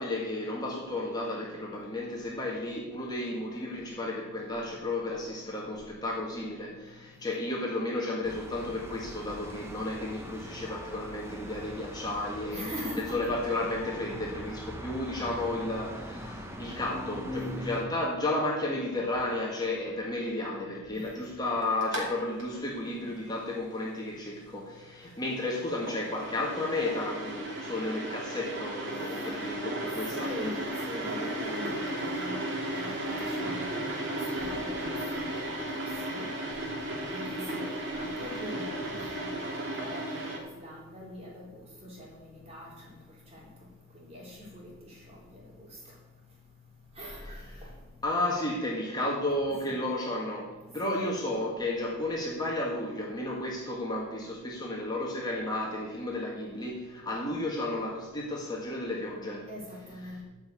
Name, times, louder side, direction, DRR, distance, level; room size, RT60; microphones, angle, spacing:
voice 1, 0.0-12.7 13.0-30.3 39.4-39.5 47.2-47.5 48.0-59.5 60.0-60.2, left 2 dB, 20° left, -3 dB, 1.7 m, -33 dB
sound 1, 8.2-17.9, equal, 10° right, 1.1 m, -41 dB
voice 2, 12.5-13.2 20.9-21.0 30.1-30.6 30.8-32.4 32.7-36.3 37.1-42.7 43.3-43.4 43.9-44.9 47.0-47.4 49.6-49.8 50.8-51.1 59.5-60.2, equal, 30° right, -3 dB, 3.6 m, -42 dB
sound 2, 21.8-22.1 22.4-22.5 25.2-40.4, right 1 dB, 55° right, 2.7 m, -35 dB
13.5 x 5.6 x 8.4 m, 1.2 s
head